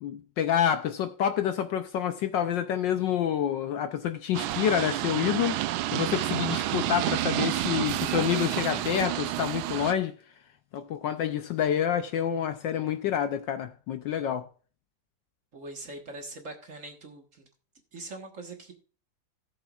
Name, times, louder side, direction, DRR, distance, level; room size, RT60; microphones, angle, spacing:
voice 1, 0.0-10.1 10.7-14.5, left 9 dB, 70° left, 1.2 m, -28 dB
sound 1, 4.3-9.9, right 15 dB, 75° right, 1.3 m, -29 dB
sound 2, 6.1-9.5, right 2 dB, 5° right, 1.0 m, -51 dB
voice 2, 15.5-17.5 17.9-18.7, right 2 dB, 40° right, 1.6 m, -42 dB
17.0 x 7.2 x 2.4 m
omnidirectional pair, 2.4 m